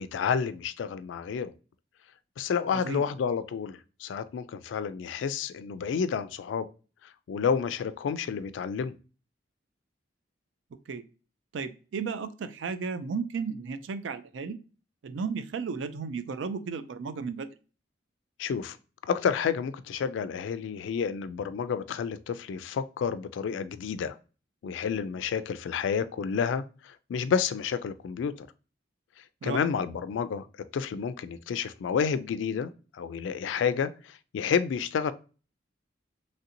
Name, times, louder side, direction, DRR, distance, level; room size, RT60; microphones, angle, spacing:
voice 1, 0.0-1.5 2.4-6.7 7.3-8.9 18.4-18.8 19.1-24.2 24.6-28.5 29.4-30.5 30.7-35.1, left 6 dB, 75° left, 0.3 m, -30 dB
voice 2, 2.7-3.0 10.9-11.0 11.5-14.6 15.0-17.5 29.4-29.7, right 5 dB, 75° right, 0.4 m, -34 dB
3.1 x 2.5 x 2.7 m
head